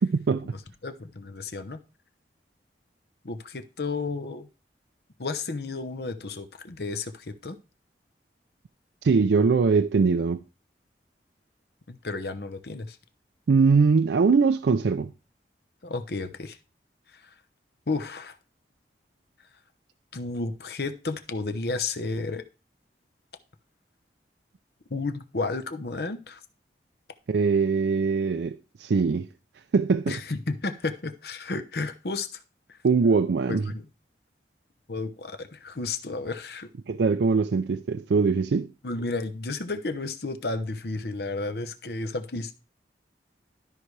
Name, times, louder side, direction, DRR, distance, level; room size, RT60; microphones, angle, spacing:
voice 1, 0.0-0.6 9.0-10.4 13.5-15.1 27.3-29.3 29.7-30.2 32.8-33.7 36.9-38.7, right 4 dB, 70° right, 0.4 m, -22 dB
voice 2, 0.8-1.8 3.2-4.5 5.2-7.6 11.9-13.0 15.8-16.6 17.1-17.3 17.9-18.4 20.1-22.4 24.9-26.4 30.1-32.4 32.7-32.8 33.5-33.9 34.9-36.7 38.8-42.5, left 3 dB, 60° left, 0.9 m, -32 dB
13.0 x 4.8 x 3.3 m
head